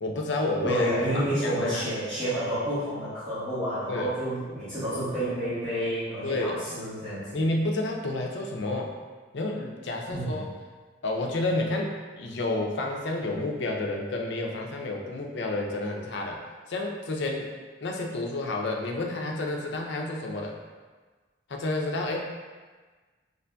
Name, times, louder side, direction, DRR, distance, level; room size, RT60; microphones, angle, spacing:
voice 1, 0.0-1.8 3.9-4.1 6.2-6.6 7.3-8.9 9.3-10.5 11.0-16.4 16.7-17.5 17.8-20.6 21.5-22.2, left 2 dB, 65° left, 1 dB, 0.5 m, -30 dB
voice 2, 0.6-7.4 10.1-10.4, equal, 20° right, -16 dB, 1.2 m, -29 dB
4.9 x 2.6 x 2.2 m, 1.4 s
head